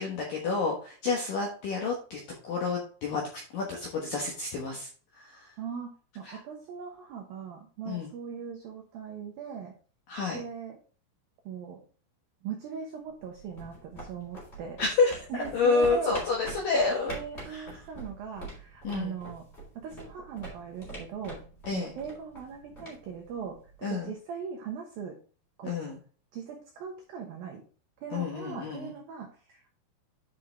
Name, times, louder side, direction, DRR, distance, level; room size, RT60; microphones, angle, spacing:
voice 1, 0.0-3.2 3.5-4.9 5.2-5.5 7.9-8.1 10.1-10.4 14.8-15.2 15.5-17.1 17.5-17.6 18.8-19.1 21.7-21.9 23.8-24.1 25.6-26.0 28.1-28.9, left 4 dB, 75° left, -1 dB, 2.0 m, -29 dB
voice 2, 5.6-9.7 10.3-10.8 11.5-11.8 12.4-14.8 15.3-16.2 17.1-19.4 19.8-21.4 21.7-25.2 25.6-25.8 26.3-27.7 28.0-29.7, right 7 dB, 80° right, 2 dB, 2.1 m, -39 dB
sound 1, 13.1-23.9, right 1 dB, 15° left, 2.4 m, -45 dB
10.0 x 5.2 x 3.3 m, 0.41 s
omnidirectional pair, 5.8 m